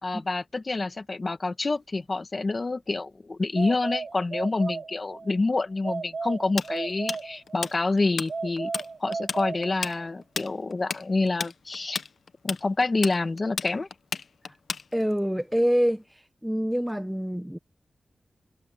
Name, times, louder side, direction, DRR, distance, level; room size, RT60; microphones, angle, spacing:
voice 1, 0.0-8.7 9.0-12.0 12.4-13.9, left 3 dB, 35° left, 1.9 m, -27 dB
sound 1, 3.6-5.3 5.8-7.8 8.3-10.2, right 4 dB, 50° right, 1.1 m, -35 dB
Tools, 6.6-8.3 8.6-8.9 9.1-15.2, left 5 dB, 70° left, 0.9 m, -32 dB
voice 2, 14.9-16.0 16.4-17.6, equal, 5° right, 0.9 m, -25 dB
wide cardioid pair, 115°, 0 cm